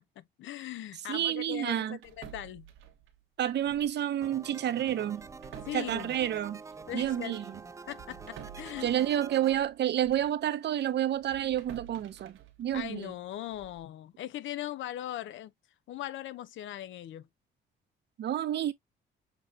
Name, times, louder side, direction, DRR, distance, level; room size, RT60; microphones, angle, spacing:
voice 1, 0.2-2.7 5.6-6.1 6.9-7.4 7.9-8.9 12.7-15.5 15.9-17.3, left 13 dB, 75° left, 0.6 m, -39 dB
voice 2, 1.1-2.0 3.4-5.3 5.7-6.6 6.9-7.6 8.8-13.1 18.2-18.7, right 11 dB, 60° right, 0.7 m, -29 dB
sound 1, 2.0-4.1 4.3-4.5 5.1-10.4 10.8-13.9, right 9 dB, 85° right, 1.1 m, -52 dB
sound 2, 4.2-9.5, right 4 dB, 15° right, 0.3 m, -47 dB
6.8 x 2.9 x 2.4 m
cardioid pair, 90°, 20 cm